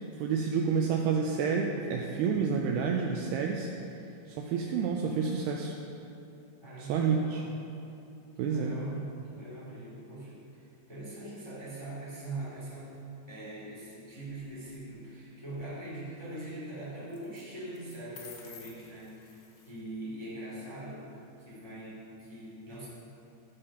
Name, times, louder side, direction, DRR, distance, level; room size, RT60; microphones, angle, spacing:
voice 1, 0.2-3.7 4.3-5.8 6.8-7.4 8.4-8.8, right 6 dB, 85° right, 1 dB, 2.3 m, -29 dB
voice 2, 6.6-7.5 8.4-12.9 13.3-19.4 19.6-21.1 21.4-22.9, right 2 dB, 20° left, -9 dB, 0.7 m, -42 dB
sound 1, 14.2-14.8 17.1-17.4 17.7-19.8, left 7 dB, 70° left, 2.5 m, -52 dB
12.5 x 5.3 x 5.5 m, 2.7 s
omnidirectional pair, 5.2 m